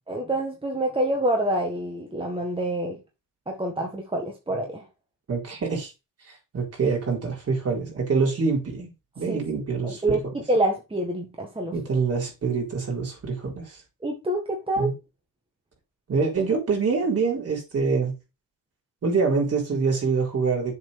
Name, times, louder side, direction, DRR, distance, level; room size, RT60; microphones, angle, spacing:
voice 1, 0.1-3.0 3.5-4.9 9.3-9.4 9.8-11.7 14.0-14.9, right 1 dB, 15° right, 1.6 m, -26 dB
voice 2, 5.3-5.9 6.5-10.2 11.7-13.8 14.8-14.9 16.1-18.1 19.0-20.7, right 4 dB, 45° right, 4.2 m, -25 dB
7.3 x 4.4 x 5.3 m
cardioid pair, 125°, 34 cm